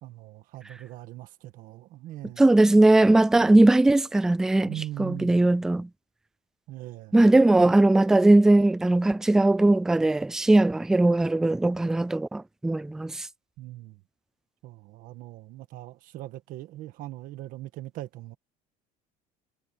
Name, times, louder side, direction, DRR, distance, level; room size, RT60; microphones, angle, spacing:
voice 1, 0.0-2.4 3.4-3.6 4.6-5.5 6.7-7.1 13.6-14.0 14.6-18.4, right 15 dB, 50° right, 1.6 m, -40 dB
voice 2, 2.4-5.9 7.1-13.3, right 2 dB, 5° right, 0.3 m, -19 dB
cardioid pair, 175°, 17 cm